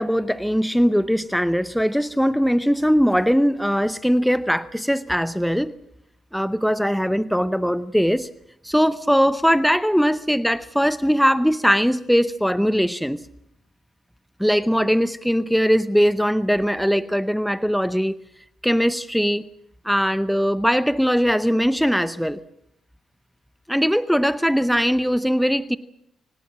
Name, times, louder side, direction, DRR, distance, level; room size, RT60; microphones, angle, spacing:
voice 1, 0.0-5.7 6.3-8.3 8.6-13.3 14.4-18.2 18.6-19.5 19.8-22.4 23.7-25.8, equal, ahead, 14 dB, 0.8 m, -20 dB
25.0 x 18.5 x 7.5 m, 0.73 s
cardioid pair, 90°, 0 cm